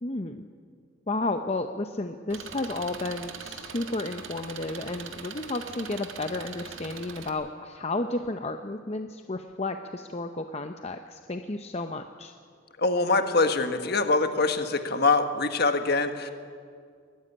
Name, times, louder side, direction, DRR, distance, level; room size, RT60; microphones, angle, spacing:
voice 1, 0.0-0.5 1.1-12.3, left 2 dB, 30° left, 6 dB, 0.7 m, -32 dB
Engine, 2.3-7.3, right 6 dB, 80° right, 1.8 m, -41 dB
voice 2, 12.8-16.3, left 3 dB, 50° left, 7 dB, 1.5 m, -24 dB
21.0 x 15.5 x 10.0 m, 2.1 s
head